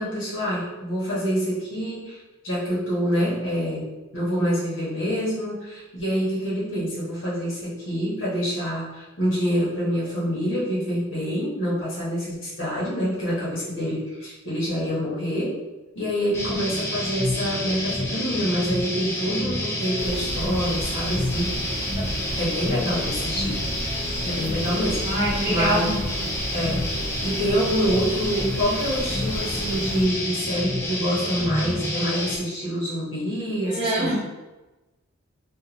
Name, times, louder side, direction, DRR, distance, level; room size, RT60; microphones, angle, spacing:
voice 1, 0.0-2.2 2.4-3.9 4.1-15.5 15.9-21.5 22.4-25.0 25.5-25.9 26.5-26.8 27.2-34.2, equal, 65° left, -7 dB, 1.3 m, -26 dB
sound 1, 16.3-32.4, left 1 dB, 10° left, 0.4 m, -29 dB
sound 2, 20.0-30.1, right 1 dB, 85° right, 0.4 m, -34 dB
voice 2, 22.0-22.3 25.0-26.0 33.6-34.2, right 1 dB, 25° right, -8 dB, 0.7 m, -25 dB
2.7 x 2.6 x 2.5 m, 1.1 s
head